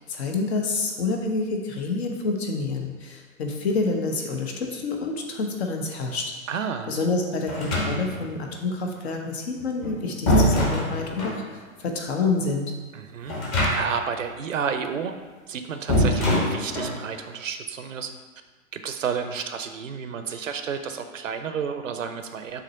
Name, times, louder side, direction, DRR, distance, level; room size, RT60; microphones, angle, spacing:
voice 1, 0.0-6.3 6.9-12.7, left 3 dB, 50° left, 2 dB, 1.1 m, -28 dB
voice 2, 6.5-6.9 12.9-13.3 13.7-15.1 15.5-18.1 18.7-22.6, right 6 dB, 65° right, 8 dB, 0.7 m, -31 dB
sound 1, 7.5-8.3 9.6-11.4 13.3-14.1 14.4-14.5 15.9-17.0, left 1 dB, 35° left, 1.7 m, -23 dB
6.4 x 3.1 x 5.5 m, 1.3 s
figure-of-eight pair, 105°, 42 cm